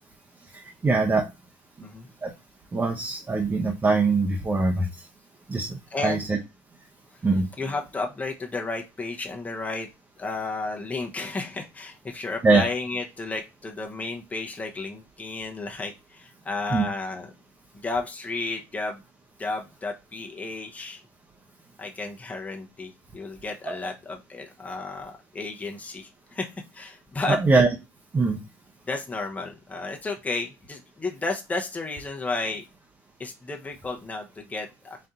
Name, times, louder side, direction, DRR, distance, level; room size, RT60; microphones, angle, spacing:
voice 1, 0.8-1.3 2.2-2.3 2.7-4.9 5.5-6.4 7.2-7.5 12.4-12.7 16.7-16.8 23.7-23.8 27.3-27.7 28.1-28.4, right 3 dB, 25° right, 1 dB, 0.9 m, -22 dB
voice 2, 5.9-6.3 7.6-9.9 10.2-17.3 17.7-19.0 19.4-21.0 21.8-27.4 28.9-32.6 33.2-35.0, left 3 dB, 20° left, 1 dB, 0.9 m, -32 dB
4.2 x 2.6 x 3.7 m, 0.25 s
hypercardioid pair, 75°, 8 cm